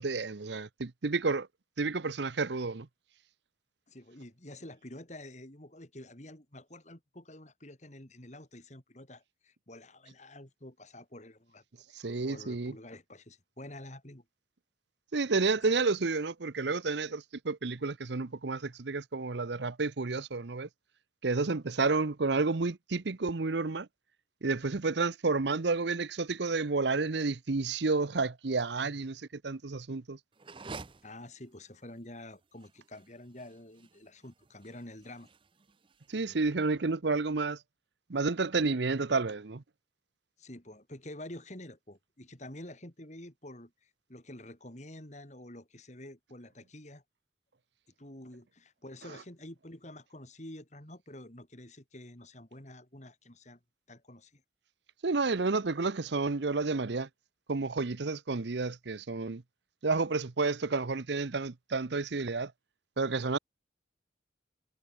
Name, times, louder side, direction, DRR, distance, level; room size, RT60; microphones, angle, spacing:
voice 1, 0.0-1.5 1.8-2.9 11.9-12.7 15.1-20.7 21.2-23.9 24.4-30.2 36.1-37.6 38.1-39.6 55.0-57.1 57.5-59.4 59.8-62.5 63.0-63.4, right 3 dB, 65° right, 0.8 m, -30 dB
voice 2, 3.9-11.6 11.9-14.2 31.0-35.3 36.1-36.4 40.4-47.0 48.0-53.6 53.9-54.4, left 1 dB, 40° left, 3.4 m, -48 dB
sound 1, 30.3-36.5, right 3 dB, 25° right, 0.6 m, -50 dB
head